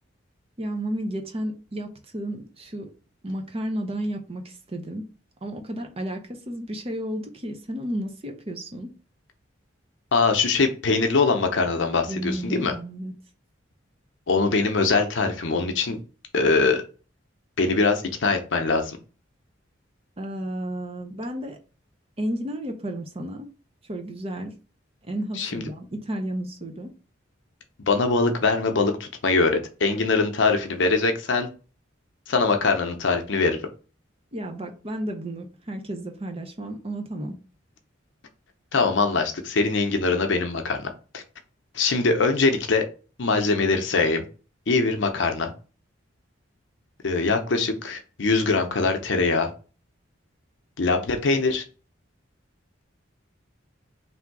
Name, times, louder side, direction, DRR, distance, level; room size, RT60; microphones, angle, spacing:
voice 1, 0.6-2.9 3.2-5.0 5.4-6.2 6.5-8.9 12.1-13.1 20.2-21.6 22.2-23.5 23.9-24.5 25.1-26.9 34.3-37.3, right 1 dB, 30° right, 0.7 m, -32 dB
voice 2, 10.1-12.7 14.3-16.0 16.3-16.8 17.6-19.0 25.3-25.6 27.8-31.5 32.3-33.6 38.7-40.9 41.1-41.2 41.7-42.8 43.2-44.2 44.7-45.5 47.0-49.5 50.8-51.6, left 3 dB, 70° left, 0.7 m, -22 dB
3.4 x 2.6 x 4.6 m
head